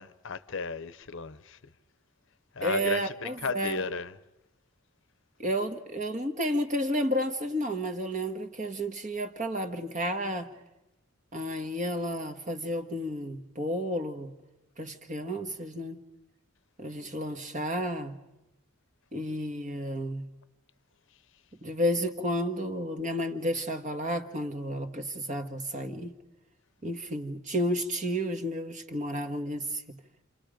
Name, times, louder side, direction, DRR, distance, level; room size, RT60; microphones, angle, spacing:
voice 1, 0.0-1.6 2.5-4.1, left 5 dB, 60° left, 0.8 m, -35 dB
voice 2, 2.6-3.8 5.4-10.5 11.3-14.3 14.8-16.0 16.8-18.2 19.1-20.3 21.6-26.1 26.8-29.8, equal, 35° right, 1.6 m, -31 dB
29.5 x 28.0 x 5.2 m
head